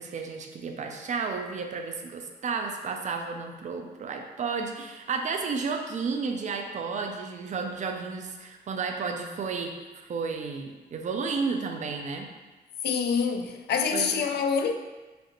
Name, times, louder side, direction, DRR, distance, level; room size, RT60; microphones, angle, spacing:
voice 1, 0.0-12.3 13.9-14.2, right 5 dB, 45° right, 4 dB, 0.4 m, -32 dB
voice 2, 12.8-14.7, left 6 dB, 70° left, 5 dB, 0.4 m, -26 dB
5.0 x 2.4 x 2.9 m, 1.2 s
wide cardioid pair, 170°, 18 cm